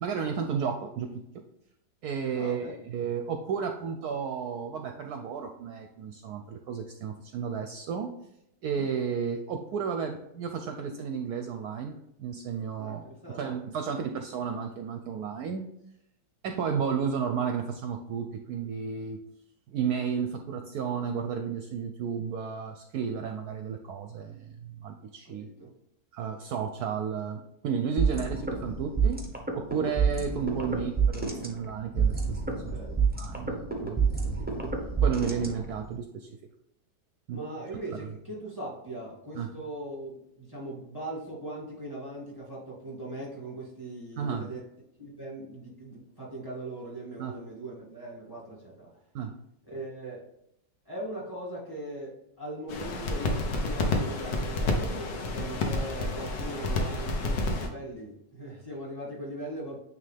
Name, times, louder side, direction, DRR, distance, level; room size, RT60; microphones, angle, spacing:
voice 1, 0.0-1.4 2.0-8.1 8.6-13.0 13.4-15.6 16.4-19.2 19.7-25.5 26.1-29.2 29.5-32.8 33.1-34.5 35.0-36.3 37.3-37.4 39.4-39.5 44.2-44.5 47.2-47.3 49.1-49.3, right 6 dB, 70° right, 5 dB, 1.0 m, -33 dB
voice 2, 2.3-2.9 8.7-8.9 12.8-13.6 25.2-25.7 28.0-28.2 32.7-33.0 35.3-35.5 37.3-44.6 45.0-48.9 49.7-50.2 50.9-59.8, right 1 dB, 10° left, -6 dB, 2.2 m, -40 dB
sound 1, 28.0-36.0, right 5 dB, 10° right, 0.4 m, -28 dB
sound 2, 52.7-57.7, left 2 dB, 80° left, 1.6 m, -29 dB
9.1 x 3.4 x 3.4 m, 0.79 s
omnidirectional pair, 1.9 m